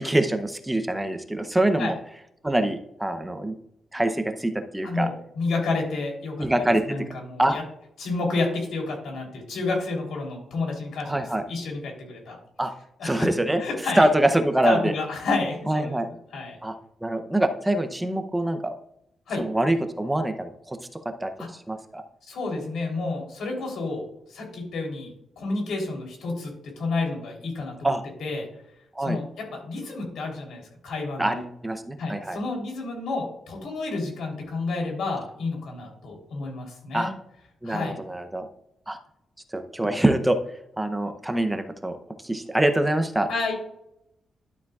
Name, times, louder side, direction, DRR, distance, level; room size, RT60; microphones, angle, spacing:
voice 1, 0.0-1.9 2.4-3.6 3.9-5.1 6.4-6.8 7.4-7.6 11.0-11.4 12.6-12.7 13.0-13.6 14.0-14.9 15.7-16.1 16.6-16.7 17.0-18.7 19.4-20.8 21.2-21.3 21.7-22.0 27.8-28.0 29.0-29.2 31.2-32.4 36.9-37.1 37.6-38.5 38.9-39.0 39.5-40.4 40.8-42.0 42.2-43.3, right 1 dB, 10° right, 7 dB, 0.6 m, -24 dB
voice 2, 4.8-6.5 6.9-7.6 8.0-12.4 13.0-13.3 13.6-14.1 14.6-16.0 16.3-16.6 19.3-19.4 21.4-21.5 22.3-25.1 25.4-27.9 28.2-28.5 29.0-31.4 32.0-37.1 37.6-38.0 43.3-43.5, left 3 dB, 85° left, 1 dB, 3.3 m, -30 dB
12.0 x 7.1 x 2.4 m, 0.78 s
wide cardioid pair, 140°, 0 cm